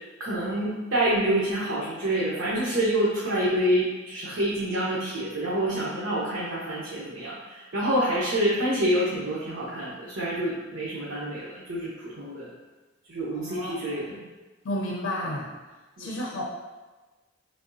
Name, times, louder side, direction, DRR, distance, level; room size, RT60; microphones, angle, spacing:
voice 1, 0.2-12.5 13.1-14.2 16.0-16.1, right 1 dB, 85° right, -7 dB, 0.8 m, -27 dB
voice 2, 13.3-14.2 14.6-15.5 16.0-16.4, left 1 dB, 85° left, -2 dB, 0.5 m, -32 dB
4.6 x 3.4 x 2.6 m, 1.2 s
head